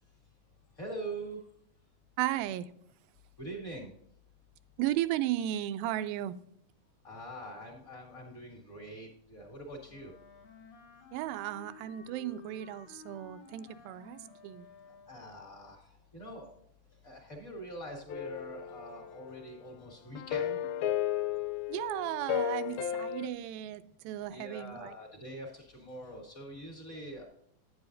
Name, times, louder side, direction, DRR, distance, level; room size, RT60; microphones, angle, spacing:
voice 1, 0.8-1.4 3.4-3.9 7.0-10.1 15.1-15.8 16.1-16.5 17.0-20.6 24.3-27.2, right 1 dB, 25° left, -1 dB, 1.7 m, -44 dB
voice 2, 2.2-2.7 4.8-6.4 11.1-14.7 21.7-25.0, right 13 dB, 85° right, 13 dB, 2.4 m, -35 dB
Wind instrument woodwind instrument, 9.9-15.4, left 4 dB, 60° left, 2.2 m, -54 dB
sound 1, 18.1-19.6 20.2-23.3, left 11 dB, 90° left, 2.5 m, -34 dB
9.8 x 9.6 x 2.6 m, 0.72 s
omnidirectional pair, 4.2 m